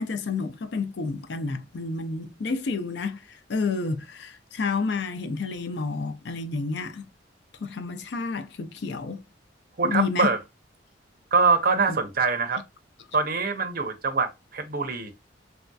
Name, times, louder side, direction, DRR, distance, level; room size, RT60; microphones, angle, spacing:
voice 1, 0.0-3.2 3.5-7.1 7.6-9.2 9.8-10.3 11.9-12.0, left 4 dB, 60° left, 0.4 m, -30 dB
voice 2, 9.8-10.4 11.3-12.6 13.1-15.1, right 4 dB, 50° right, 0.6 m, -24 dB
3.3 x 2.6 x 2.3 m
head